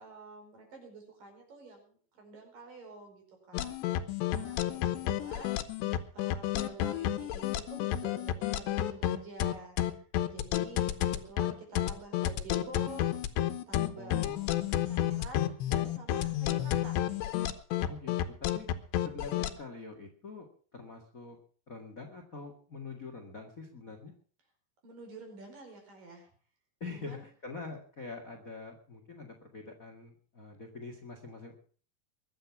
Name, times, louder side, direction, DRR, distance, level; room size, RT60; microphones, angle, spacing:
voice 1, 0.0-5.6 6.1-10.0 10.3-13.2 13.7-14.3 14.7-17.0 24.8-26.3 26.9-27.2, right 3 dB, 55° right, 3 dB, 6.5 m, -49 dB
sound 1, 3.5-19.5, left 12 dB, 90° left, 3.2 m, -30 dB
voice 2, 14.0-14.5 17.9-18.7 19.0-21.4 21.7-24.1 26.8-31.5, left 3 dB, 45° left, 5 dB, 1.0 m, -45 dB
22.0 x 9.0 x 6.0 m, 0.43 s
omnidirectional pair, 4.9 m